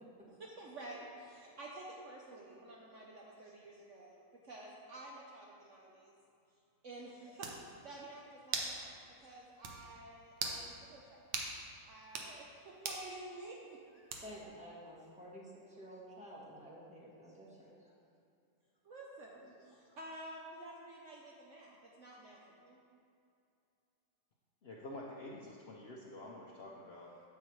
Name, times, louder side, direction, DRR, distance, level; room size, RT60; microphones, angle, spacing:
voice 1, 0.4-6.1 6.8-7.5 7.8-8.9 9.2-11.3 11.9-14.1 18.8-22.8, right 2 dB, 60° right, -2 dB, 0.8 m, -51 dB
sound 1, 7.0-7.1 7.4-7.6 8.5-8.8 9.1-9.2 9.6-9.8 10.3-10.6 11.3-11.5 12.0-12.3 12.8-13.1 14.1-14.5, right 4 dB, 80° right, 1.5 m, -39 dB
voice 2, 14.2-17.9, equal, 5° right, -6 dB, 1.1 m, -52 dB
voice 3, 24.6-27.1, left 1 dB, 90° left, -3 dB, 0.5 m, -48 dB
8.2 x 8.0 x 3.1 m, 2.6 s
omnidirectional pair, 2.0 m